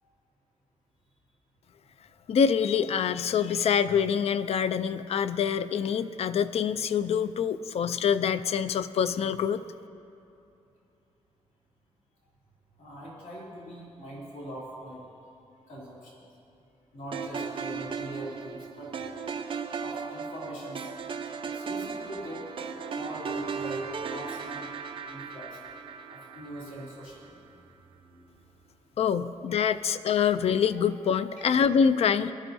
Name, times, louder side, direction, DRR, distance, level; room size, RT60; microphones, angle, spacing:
voice 1, 2.3-9.6 29.0-32.3, left 7 dB, 55° left, 13 dB, 0.3 m, -25 dB
voice 2, 12.8-15.0 15.7-16.2 16.9-18.9 19.8-20.9 21.4-22.5 22.9-24.7 25.0-25.6 26.1-27.5 28.0-28.3 30.7-30.8 31.1-31.4, equal, 70° left, -6 dB, 2.9 m, -42 dB
sound 1, 17.1-27.4, right 6 dB, 45° right, 0.6 m, -37 dB
19.5 x 12.0 x 2.6 m, 2.8 s
wide cardioid pair, 175°, 12 cm